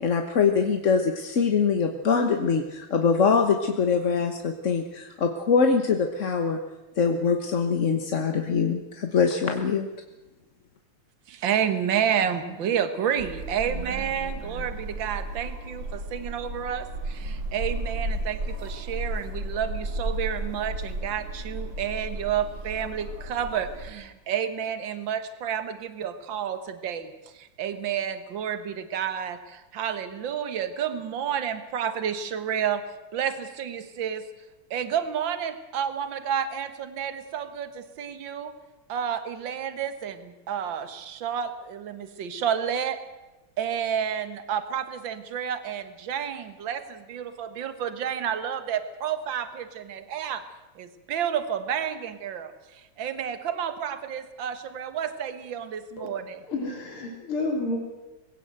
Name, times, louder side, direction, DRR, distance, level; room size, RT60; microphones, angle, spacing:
voice 1, 0.0-6.6 7.0-9.9, left 5 dB, 40° left, 5 dB, 1.3 m, -23 dB
voice 2, 11.3-32.8 33.1-34.3 34.7-38.5 38.9-43.0 43.6-50.4 50.8-56.4, right 8 dB, 60° right, 10 dB, 2.1 m, -30 dB
sound 1, 13.2-23.9, right 1 dB, 85° right, 5.1 m, -34 dB
voice 3, 56.4-57.8, left 2 dB, 75° left, 1 dB, 4.7 m, -30 dB
20.5 x 17.0 x 7.8 m, 1.1 s
omnidirectional pair, 2.4 m